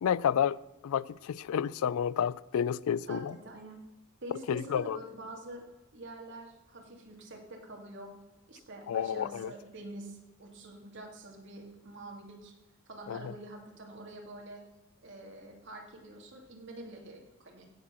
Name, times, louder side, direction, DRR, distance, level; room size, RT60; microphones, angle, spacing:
voice 1, 0.0-3.4 4.5-5.0 8.9-9.5 13.1-13.3, left 8 dB, 90° left, 0.3 m, -30 dB
voice 2, 3.1-3.8 4.2-5.6 5.9-8.1 8.5-12.5 12.9-14.6 15.0-17.6, right 1 dB, 60° right, 2.3 m, -46 dB
16.0 x 5.6 x 6.2 m
head